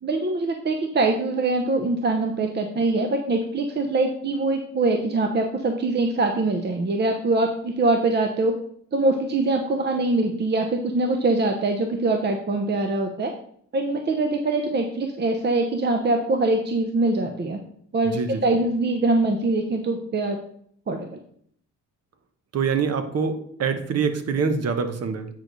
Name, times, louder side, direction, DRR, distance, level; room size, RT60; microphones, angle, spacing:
voice 1, 0.0-8.5 8.9-13.3 13.7-17.6 17.9-20.4 20.9-21.1, right 2 dB, 35° right, 4 dB, 0.9 m, -23 dB
voice 2, 18.0-18.4 22.5-25.3, right 5 dB, 55° right, 8 dB, 1.1 m, -25 dB
8.8 x 4.8 x 4.0 m, 0.64 s
cardioid pair, 90°, 30 cm